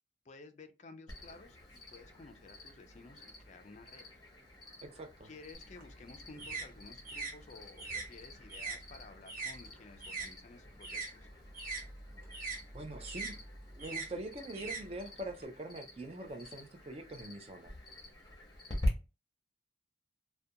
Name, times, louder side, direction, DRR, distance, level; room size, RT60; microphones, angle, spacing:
voice 1, 0.2-4.1 5.2-11.3, left 3 dB, 40° left, 0.4 m, -54 dB
Cricket, 1.1-18.9, left 1 dB, 20° left, 0.8 m, -47 dB
voice 2, 4.8-5.3 12.7-13.4 13.7-17.7, right 1 dB, 30° right, 0.4 m, -43 dB
sound 1, 5.5-10.3 10.6-15.4, right 4 dB, 50° right, 1.0 m, -43 dB
2.4 x 2.2 x 2.6 m
head